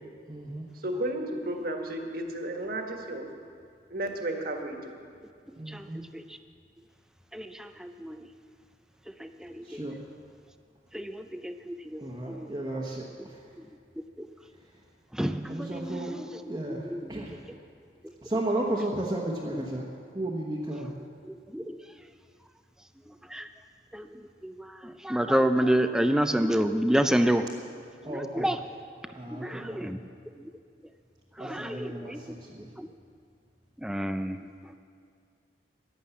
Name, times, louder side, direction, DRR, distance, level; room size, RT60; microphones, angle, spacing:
voice 1, 0.3-0.7 5.6-6.0 9.6-10.0 12.0-13.5 15.5-16.1 16.5-17.5 18.2-19.8 20.1-20.9 28.0-28.5 29.1-30.0 31.4-32.7, right 1 dB, 20° right, -4 dB, 1.1 m, -34 dB
voice 2, 0.8-3.3 3.9-4.9, right 1 dB, 55° right, 3 dB, 1.6 m, -33 dB
voice 3, 5.7-6.4 7.3-8.3 9.1-9.8 10.9-12.6 13.6-13.7 14.0-14.3 15.1-17.2 18.0-18.1 21.2-21.9 23.1-23.5 23.9-27.5 28.1-28.6 29.0-30.0 30.4-30.5 31.4-32.4 32.8-32.9 33.8-34.8, right 1 dB, 5° right, 8 dB, 0.4 m, -30 dB
11.5 x 11.5 x 8.2 m, 2.2 s
head